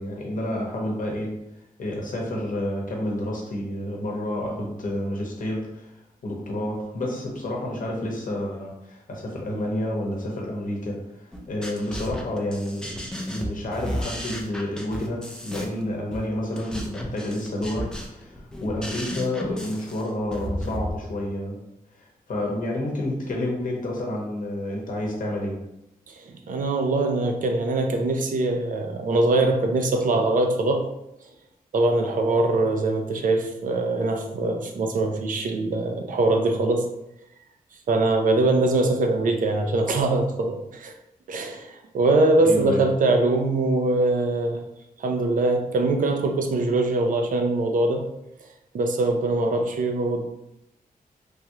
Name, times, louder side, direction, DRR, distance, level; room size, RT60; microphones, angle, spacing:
voice 1, 0.0-1.3 1.8-5.9 6.2-13.0 13.3-21.6 21.9-25.6 42.4-42.9, left 1 dB, 60° left, -1 dB, 0.9 m, -29 dB
sound 1, 11.3-20.9, equal, 5° left, 0.4 m, -34 dB
voice 2, 26.5-30.9 31.7-36.9 37.9-40.9 41.3-44.6 45.0-48.0 48.7-50.2, right 2 dB, 60° right, 4 dB, 0.4 m, -22 dB
3.3 x 2.3 x 2.8 m, 0.84 s
wide cardioid pair, 125°, 15 cm